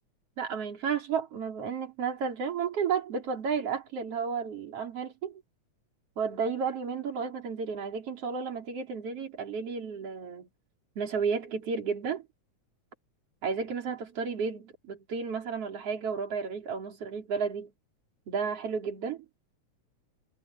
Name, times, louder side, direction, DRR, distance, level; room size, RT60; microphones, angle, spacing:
voice 1, 0.4-5.4 6.2-10.5 11.0-12.3 13.4-17.7 18.3-19.3, right 6 dB, 50° right, 4.6 m, -32 dB
omnidirectional pair, 3.5 m